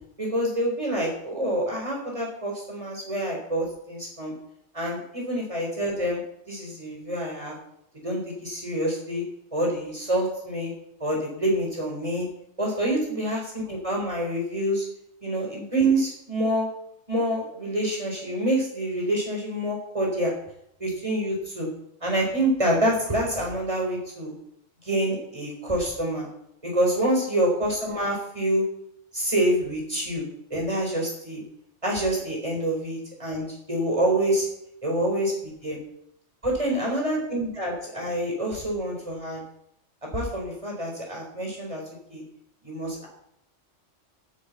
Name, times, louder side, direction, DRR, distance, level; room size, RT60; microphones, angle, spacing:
voice 1, 0.2-4.3 4.7-6.2 6.5-7.6 8.0-9.2 9.5-10.7 11.0-12.3 12.6-14.8 15.2-16.7 17.1-20.3 20.8-21.7 22.0-24.3 24.8-26.3 26.6-28.7 29.1-31.4 31.8-34.5 34.8-35.8 36.4-39.4 40.1-41.8 42.1-42.2 42.6-43.1, right 1 dB, 25° right, -2 dB, 4.2 m, -27 dB
9.4 x 7.5 x 8.3 m, 0.75 s
omnidirectional pair, 1.2 m